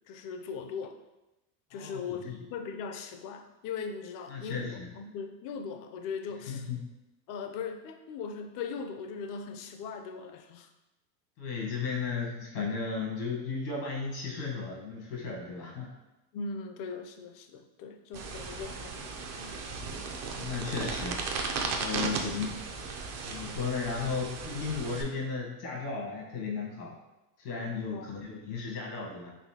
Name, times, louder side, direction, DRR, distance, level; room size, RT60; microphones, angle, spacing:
voice 1, 0.1-1.0 1.7-6.7 7.3-10.7 16.3-19.5 27.9-28.2, left 5 dB, 45° left, 6 dB, 0.5 m, -39 dB
voice 2, 1.7-2.4 4.3-4.9 6.5-6.8 11.4-15.9 20.3-21.2 21.6-22.6 23.3-26.9 27.4-29.3, left 5 dB, 80° left, -2 dB, 1.3 m, -35 dB
sound 1, 18.1-25.0, right 4 dB, 35° right, 0.5 m, -36 dB
4.1 x 2.6 x 2.8 m, 0.97 s
supercardioid pair, 105°, 47 cm